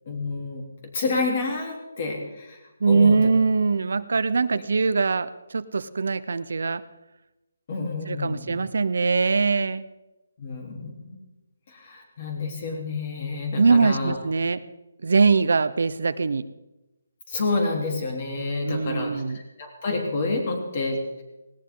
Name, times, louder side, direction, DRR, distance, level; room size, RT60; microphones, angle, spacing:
voice 1, 0.1-0.6 0.9-2.6 2.9-3.2 4.5-4.6 7.7-8.6 10.4-11.2 11.7-14.2 17.3-21.2, left 3 dB, 35° left, 1 dB, 3.6 m, -29 dB
voice 2, 2.8-6.8 8.1-9.8 13.6-14.6 15.0-16.5 18.6-19.4, right 4 dB, 65° right, 13 dB, 0.8 m, -22 dB
18.5 x 18.0 x 3.9 m, 1.0 s
hypercardioid pair, 170°, 0 cm